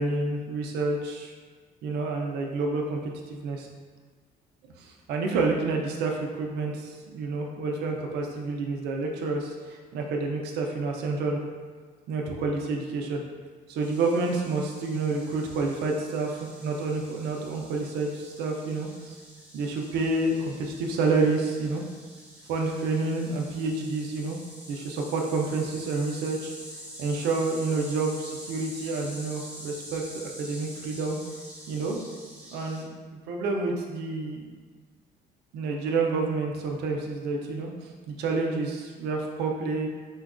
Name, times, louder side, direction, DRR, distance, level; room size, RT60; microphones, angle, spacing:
voice 1, 0.0-1.3 1.8-3.7 4.8-11.4 12.1-13.2 13.7-19.2 19.5-21.8 22.5-24.4 24.7-26.5 27.0-31.2 31.7-32.0 32.5-34.4 35.5-39.9, right 3 dB, 80° right, 1 dB, 0.5 m, -29 dB
sound 1, 13.8-32.8, equal, 10° right, 0.7 m, -46 dB
4.4 x 2.2 x 2.4 m, 1.5 s
cardioid pair, 110°, 17 cm